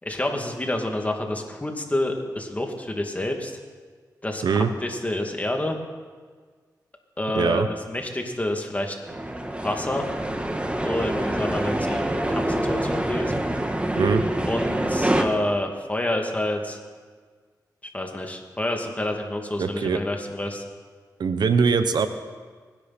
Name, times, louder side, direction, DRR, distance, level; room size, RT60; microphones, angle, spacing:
voice 1, 0.0-3.6 4.2-5.8 7.2-9.0 9.6-10.1 10.8-13.3 14.5-16.8 17.9-20.6, left 1 dB, 20° left, 2 dB, 2.6 m, -28 dB
voice 2, 7.3-7.7 14.0-14.2 19.6-20.0 21.2-22.1, right 5 dB, 75° right, 10 dB, 0.9 m, -21 dB
sound 1, 9.1-15.2, right 1 dB, 15° right, 1.6 m, -26 dB
24.5 x 10.5 x 4.4 m, 1.6 s
cardioid pair, 50°, 7 cm